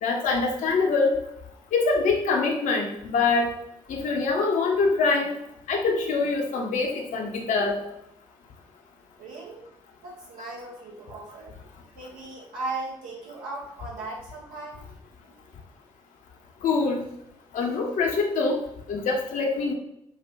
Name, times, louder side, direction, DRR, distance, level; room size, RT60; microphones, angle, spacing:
voice 1, 0.0-1.2 1.7-3.5 3.9-5.3 5.7-7.8 16.6-17.0 17.5-18.6 18.9-19.7, left 4 dB, 55° left, 1 dB, 0.9 m, -24 dB
voice 2, 9.2-9.6 10.0-11.6 11.9-14.8, right 3 dB, 65° right, -4 dB, 1.4 m, -37 dB
7.0 x 2.5 x 2.9 m, 0.78 s
figure-of-eight pair, 40°, 16 cm